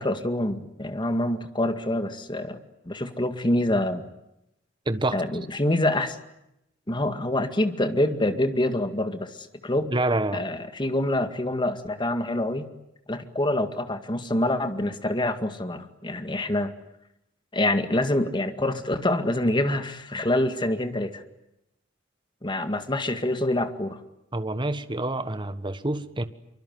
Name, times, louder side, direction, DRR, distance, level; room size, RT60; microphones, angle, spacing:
voice 1, 0.0-2.6 2.9-4.1 5.1-6.2 6.9-9.9 10.3-12.7 13.1-16.7 17.5-21.2 22.4-24.0, left 1 dB, 25° left, 8 dB, 2.0 m, -26 dB
voice 2, 4.9-5.2 9.9-10.4 24.3-26.2, right 2 dB, 25° right, 12 dB, 1.4 m, -27 dB
25.5 x 24.5 x 9.5 m, 0.85 s
head